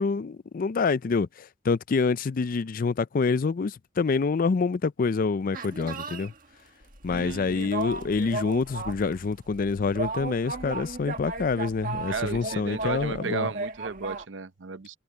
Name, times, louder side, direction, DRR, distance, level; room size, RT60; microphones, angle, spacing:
voice 1, 0.0-6.3 7.0-13.5, left 4 dB, 50° left, 0.4 m, -27 dB
sound 1, 5.5-6.3 7.5-9.2 9.9-14.2, right 3 dB, 45° right, 1.5 m, -35 dB
sound 2, 6.8-13.2, left 1 dB, 75° left, 3.5 m, -49 dB
voice 2, 7.1-7.7 12.1-15.0, right 5 dB, 75° right, 0.7 m, -34 dB
head